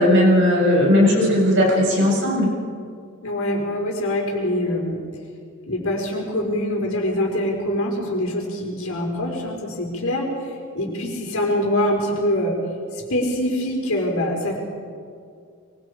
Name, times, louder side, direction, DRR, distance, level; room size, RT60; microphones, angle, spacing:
voice 1, 0.0-2.5, left 1 dB, 60° right, -2 dB, 6.9 m, -17 dB
voice 2, 3.2-5.0 5.7-10.3 10.7-12.6 13.1-14.6, left 1 dB, 75° left, 0 dB, 5.1 m, -24 dB
23.5 x 23.5 x 5.1 m, 2.3 s
head